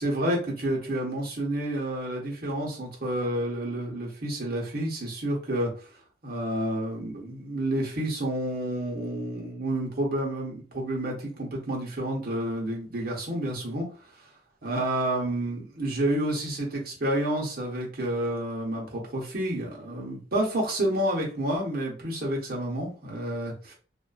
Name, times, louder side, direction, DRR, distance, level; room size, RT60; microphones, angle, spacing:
voice 1, 0.0-5.7 6.2-13.9 14.6-23.7, right 1 dB, 55° right, -2 dB, 1.0 m, -29 dB
2.5 x 2.5 x 2.3 m, 0.37 s
head